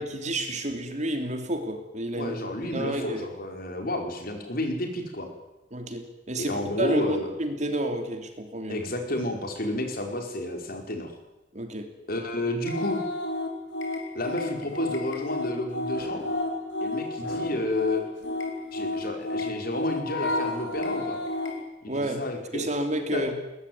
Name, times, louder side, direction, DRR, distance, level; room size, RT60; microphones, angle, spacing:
voice 1, 0.0-2.4 2.6-3.2 5.7-8.8 11.5-11.9 21.9-22.2 22.5-23.3, right 1 dB, 35° right, 6 dB, 3.0 m, -30 dB
voice 2, 2.2-5.3 6.4-7.3 8.7-11.2 12.1-13.0 14.1-16.2 16.8-18.0 18.7-21.2 21.8-22.7 23.1-23.2, left 1 dB, 50° left, 4 dB, 5.0 m, -31 dB
sound 1, 12.6-21.6, left 2 dB, 70° left, 5.4 m, -31 dB
21.5 x 20.5 x 9.5 m, 0.96 s
head